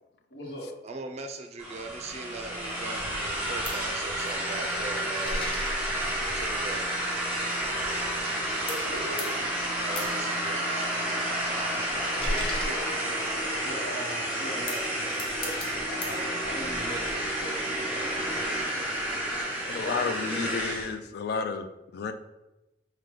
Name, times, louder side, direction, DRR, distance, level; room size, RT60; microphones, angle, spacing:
voice 1, 0.3-0.8 8.7-9.4 12.1-12.8 13.6-18.9 19.8-20.7, equal, 80° left, -5 dB, 1.0 m, -40 dB
voice 2, 0.8-5.7 6.3-6.9 9.8-11.0, right 3 dB, 40° right, 5 dB, 0.4 m, -40 dB
sound 1, 1.6-20.9, right 1 dB, 10° right, 1.2 m, -30 dB
sound 2, 3.3-8.4 8.7-13.7 14.4-16.2, left 1 dB, 30° left, 0.8 m, -39 dB
voice 3, 19.6-21.7 21.9-22.1, left 5 dB, 60° left, 9 dB, 0.3 m, -31 dB
4.8 x 2.2 x 3.7 m, 0.98 s
head